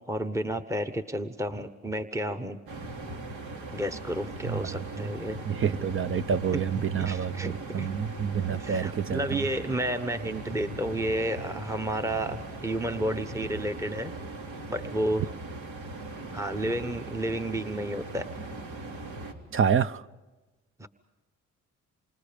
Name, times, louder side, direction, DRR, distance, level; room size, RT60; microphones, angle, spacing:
voice 1, 0.0-2.6 3.7-5.4 6.5-7.9 8.5-14.1 14.7-15.3 16.3-18.3 20.8-20.9, right 1 dB, 10° right, 1.1 m, -31 dB
sound 1, 2.7-19.3, right 2 dB, 75° right, 3.3 m, -39 dB
voice 2, 5.4-9.4 19.5-20.0, right 7 dB, 45° right, 0.8 m, -28 dB
28.5 x 25.5 x 5.2 m
cardioid pair, 90°, 30 cm